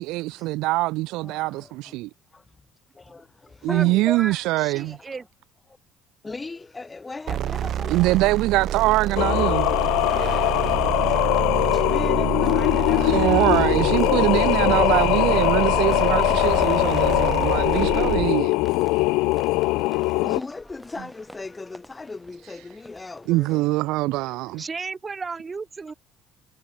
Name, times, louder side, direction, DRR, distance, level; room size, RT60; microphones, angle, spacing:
voice 1, 0.0-2.1 3.6-5.0 7.9-9.7 13.0-18.5 23.3-24.6, right 20 dB, 75° right, 0.8 m, -23 dB
voice 2, 1.2-2.0 2.3-2.7 2.9-4.1 4.6-5.2 5.7-5.8 6.2-8.3 9.0-9.2 10.6-14.9 19.7-24.7, left 3 dB, 20° left, 3.8 m, -40 dB
voice 3, 3.7-5.3 24.6-25.9, right 4 dB, 25° right, 4.0 m, -34 dB
sound 1, 7.3-18.3, right 10 dB, 55° right, 2.9 m, -28 dB
Singing, 9.2-20.4, left 23 dB, 80° left, 1.1 m, -21 dB
sound 2, 11.0-23.9, equal, ahead, 5.8 m, -48 dB
supercardioid pair, 85°, 0 cm